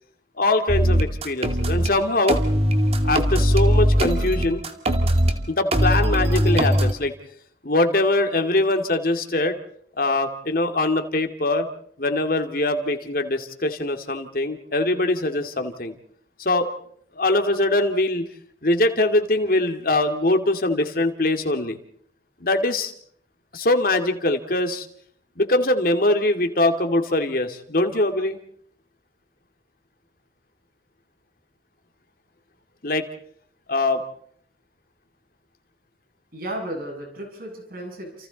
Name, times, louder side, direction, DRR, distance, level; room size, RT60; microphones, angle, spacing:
voice 1, 0.4-2.4 3.0-4.6 5.5-7.1 7.6-9.6 10.0-11.7 12.0-15.9 16.4-16.7 17.2-18.3 18.6-21.8 22.4-22.9 23.5-24.9 25.4-28.4 32.8-33.1 33.7-34.0, left 2 dB, 50° left, 6 dB, 2.4 m, -22 dB
sound 1, 0.7-1.9 2.3-5.3 5.7-6.9, equal, 35° right, 2.3 m, -20 dB
voice 2, 36.3-38.3, right 1 dB, 50° right, 2 dB, 7.8 m, -34 dB
29.5 x 28.5 x 4.1 m, 0.64 s
head